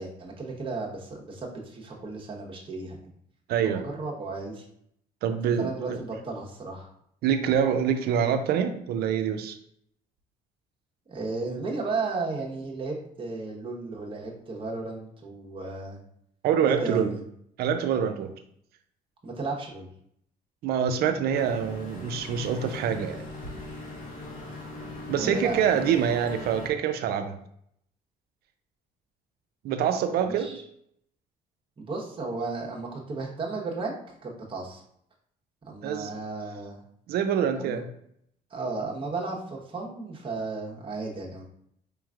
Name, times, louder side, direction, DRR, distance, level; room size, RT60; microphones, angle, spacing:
voice 1, 0.0-3.0 3.6-4.6 5.6-6.9 11.1-16.0 16.7-17.2 19.2-19.9 25.2-26.5 30.2-30.6 31.8-33.9 34.2-34.8 35.7-36.8 37.6-37.8 38.5-41.4, right 3 dB, 30° right, -2 dB, 1.1 m, -34 dB
voice 2, 3.5-3.9 5.2-6.0 7.2-9.6 16.4-17.2 17.6-18.3 20.6-23.3 25.1-27.4 29.6-30.6 35.8-36.1 37.1-37.9, right 8 dB, 70° right, 8 dB, 0.5 m, -25 dB
sound 1, 21.3-26.7, left 2 dB, 55° left, 1.1 m, -40 dB
5.0 x 3.1 x 2.4 m, 0.70 s
cardioid pair, 110°, 17 cm